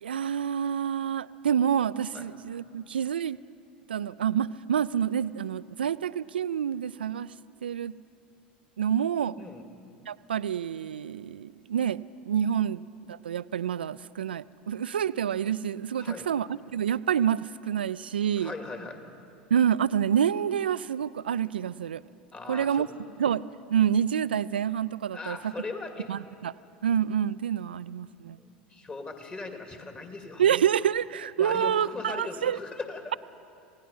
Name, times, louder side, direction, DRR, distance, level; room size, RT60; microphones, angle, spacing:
voice 1, 0.0-3.4 3.9-7.3 7.6-7.9 8.8-9.3 10.1-18.5 19.5-22.0 22.5-22.9 23.2-25.5 26.1-26.5 26.8-28.4 30.4-32.6, right 9 dB, 80° right, 17 dB, 0.4 m, -27 dB
voice 2, 9.3-9.7 16.0-16.3 18.4-19.0 22.3-22.9 25.1-26.1 28.4-30.4 31.4-33.2, left 3 dB, 20° left, 5 dB, 2.5 m, -39 dB
27.5 x 17.5 x 5.6 m, 2.5 s
figure-of-eight pair, 80°, 5 cm